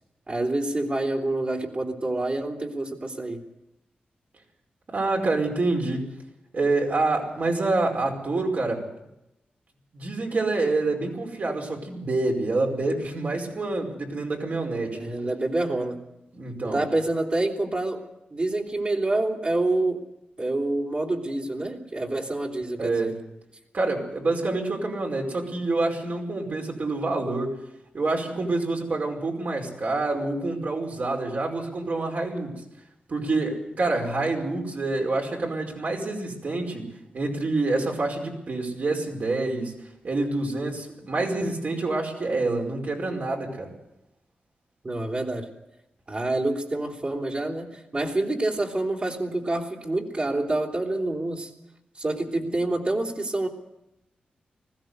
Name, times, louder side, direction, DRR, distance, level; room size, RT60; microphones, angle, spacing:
voice 1, 0.3-3.4 14.9-16.0 16.7-18.0 18.3-20.0 20.4-23.1 44.8-45.5 46.1-51.5 52.0-53.5, right 2 dB, 40° right, -1 dB, 3.4 m, -27 dB
voice 2, 4.9-6.1 6.5-8.9 9.9-15.0 16.3-16.8 22.8-23.1 23.7-27.6 27.9-32.6 33.1-36.9 37.1-39.7 40.0-43.7, right 2 dB, 60° right, 1 dB, 5.1 m, -27 dB
20.0 x 16.0 x 8.1 m, 0.90 s
cardioid pair, 60°, 3 cm